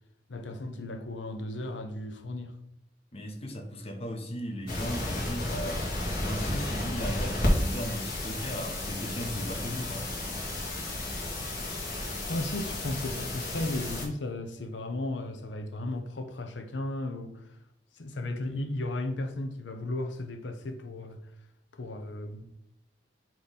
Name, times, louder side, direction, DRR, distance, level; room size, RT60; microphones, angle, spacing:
voice 1, 0.3-2.5 12.3-17.6 17.9-21.2 21.7-22.5, left 2 dB, 90° left, 0.7 m, -35 dB
voice 2, 3.1-5.8 6.2-10.2, equal, 35° left, 1.0 m, -37 dB
sound 1, 4.7-14.1, left 1 dB, 50° left, 2.0 m, -32 dB
8.4 x 3.1 x 4.1 m
head